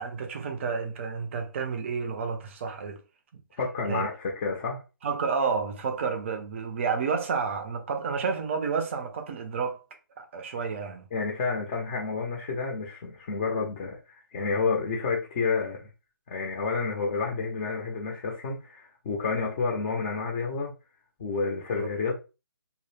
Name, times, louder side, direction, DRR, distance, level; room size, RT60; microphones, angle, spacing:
voice 1, 0.0-3.0 3.9-4.1 5.0-9.8 10.2-11.1 21.8-21.9, right 5 dB, 35° right, 0.5 m, -30 dB
voice 2, 3.6-4.8 11.1-15.9 16.3-20.7 21.2-22.1, left 4 dB, 25° left, 0.5 m, -30 dB
2.1 x 2.0 x 3.1 m
hypercardioid pair, 155°, 12 cm